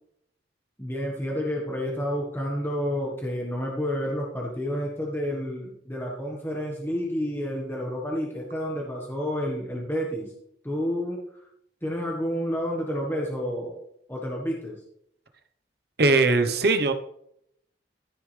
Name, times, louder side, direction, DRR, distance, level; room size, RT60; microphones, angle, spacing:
voice 1, 0.8-10.3 10.6-11.4 11.8-13.7 14.1-14.8, equal, 10° left, -2 dB, 1.6 m, -30 dB
voice 2, 16.0-16.9, right 3 dB, 60° right, 7 dB, 1.2 m, -20 dB
14.5 x 7.0 x 3.5 m, 0.71 s
head